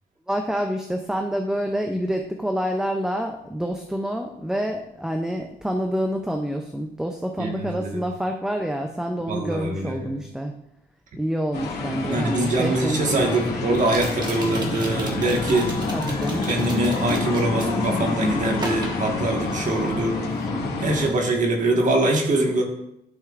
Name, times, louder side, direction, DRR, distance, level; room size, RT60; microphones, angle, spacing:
voice 1, 0.3-10.5 11.2-13.4 15.9-16.5, equal, 5° right, 3 dB, 0.4 m, -27 dB
voice 2, 7.4-8.0 9.3-10.2 12.0-15.7 16.4-20.2 20.8-22.6, right 2 dB, 45° right, 1 dB, 1.5 m, -23 dB
sound 1, 11.5-21.1, left 3 dB, 65° left, 2.0 m, -27 dB
sound 2, 12.1-12.2 13.8-18.0 18.5-19.9 20.2-20.5, right 1 dB, 25° right, 1.4 m, -37 dB
11.5 x 6.6 x 2.5 m, 0.81 s
wide cardioid pair, 160°, 17 cm